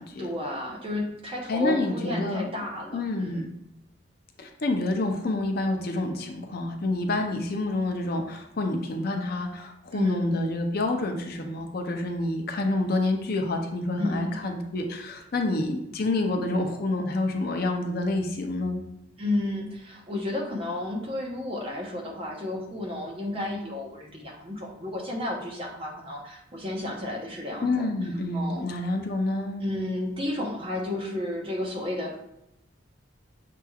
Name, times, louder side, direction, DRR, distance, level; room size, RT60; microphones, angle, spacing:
voice 1, 0.2-3.4 9.9-10.3 14.0-14.4 19.2-27.9 28.3-28.7 29.6-32.1, left 1 dB, 30° right, -1 dB, 0.8 m, -32 dB
voice 2, 1.5-2.5 2.9-3.5 4.4-18.8 27.6-29.6, left 2 dB, 50° left, 3 dB, 0.5 m, -28 dB
6.7 x 3.0 x 2.3 m, 0.82 s
head